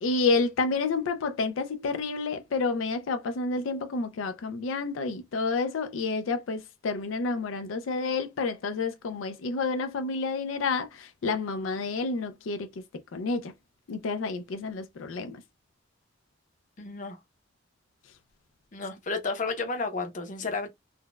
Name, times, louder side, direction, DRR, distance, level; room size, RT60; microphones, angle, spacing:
voice 1, 0.0-12.7 13.1-13.5 13.9-15.4, left 3 dB, 85° left, 0.4 m, -29 dB
voice 2, 16.8-17.2 18.7-20.7, left 3 dB, 40° left, 0.6 m, -32 dB
3.9 x 2.1 x 2.3 m
head